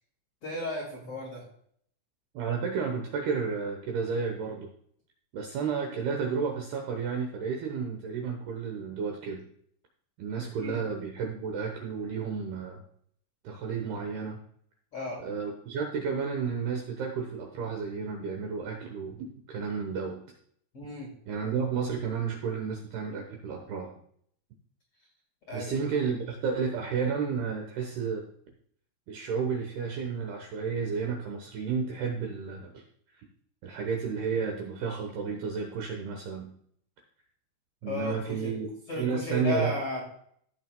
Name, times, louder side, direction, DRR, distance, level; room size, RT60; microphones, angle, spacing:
voice 1, 0.4-1.5 10.4-10.8 14.9-15.2 20.7-21.1 25.5-25.8 37.8-38.6 38.9-40.0, left 2 dB, 45° left, -3 dB, 2.0 m, -34 dB
voice 2, 2.3-4.7 5.3-9.4 10.2-12.8 13.4-14.4 15.2-20.2 21.3-23.9 25.5-28.2 29.1-32.8 33.6-36.5 37.8-39.7, right 5 dB, 75° right, 2 dB, 2.4 m, -32 dB
15.5 x 7.6 x 2.2 m, 0.64 s
omnidirectional pair, 5.8 m